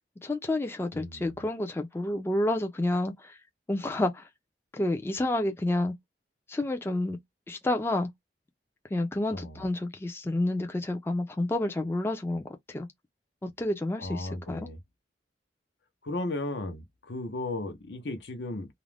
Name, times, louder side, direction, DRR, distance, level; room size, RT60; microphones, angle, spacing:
voice 1, 0.2-3.4 3.7-4.2 4.7-5.9 6.5-7.2 7.5-8.1 8.9-12.9 13.4-14.7, left 1 dB, 15° left, 0.4 m, -29 dB
voice 2, 0.9-1.4 9.3-9.7 14.0-14.8 16.0-18.7, left 2 dB, 75° left, 0.8 m, -35 dB
2.4 x 2.0 x 3.2 m
head